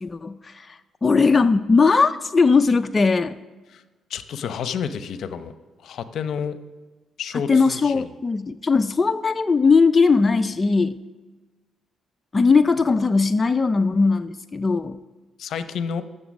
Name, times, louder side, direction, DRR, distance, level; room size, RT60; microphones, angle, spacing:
voice 1, 0.0-3.4 7.5-11.0 12.3-15.0, left 4 dB, 25° left, 8 dB, 0.4 m, -19 dB
voice 2, 4.1-5.5 5.8-6.6 7.2-8.0 15.4-16.0, left 7 dB, 70° left, 11 dB, 0.7 m, -30 dB
14.0 x 6.7 x 6.3 m, 1.2 s
cardioid pair, 90°, 0 cm